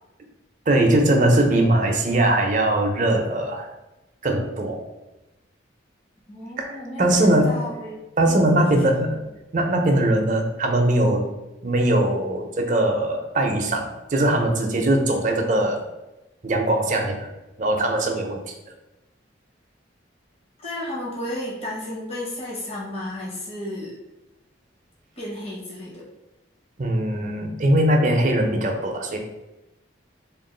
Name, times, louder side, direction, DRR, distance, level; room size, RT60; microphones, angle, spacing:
voice 1, 0.7-3.7 4.2-4.8 6.6-7.5 8.2-9.2 9.5-11.3 11.6-15.9 16.4-17.3 17.6-18.4 26.8-29.2, right 1 dB, 40° right, 2 dB, 0.6 m, -21 dB
voice 2, 6.3-7.9 8.3-8.8 9.1-9.2 20.6-24.0 25.2-26.0, left 1 dB, 30° left, -5 dB, 0.9 m, -33 dB
3.7 x 2.4 x 3.8 m, 0.99 s
head